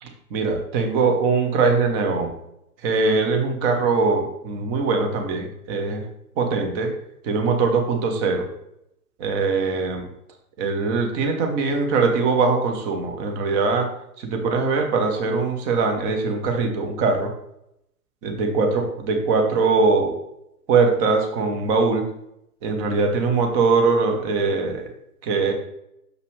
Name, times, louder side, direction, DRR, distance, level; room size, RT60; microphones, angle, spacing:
voice 1, 0.0-2.3 2.8-6.0 6.4-6.9 7.2-8.5 9.2-10.1 10.6-13.9 14.2-17.3 18.2-20.2 20.7-22.1 22.6-24.9 25.2-25.5, right 4 dB, 25° right, 4 dB, 0.9 m, -21 dB
6.4 x 5.3 x 3.2 m, 0.80 s
figure-of-eight pair, 110°, 46 cm